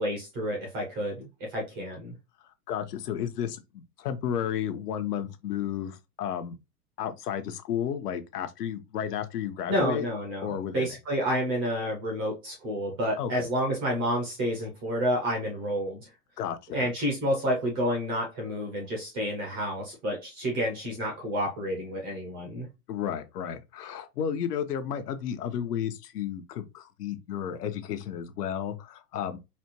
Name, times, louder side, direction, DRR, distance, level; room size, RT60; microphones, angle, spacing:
voice 1, 0.0-2.1 9.7-16.1 16.7-22.7, equal, 15° right, 0.4 m, -29 dB
voice 2, 2.7-6.6 7.0-10.1 10.4-11.0 13.2-13.3 16.4-16.9 22.9-29.4, left 9 dB, 85° left, 0.8 m, -32 dB
4.2 x 2.2 x 2.8 m
hypercardioid pair, 145°, 46 cm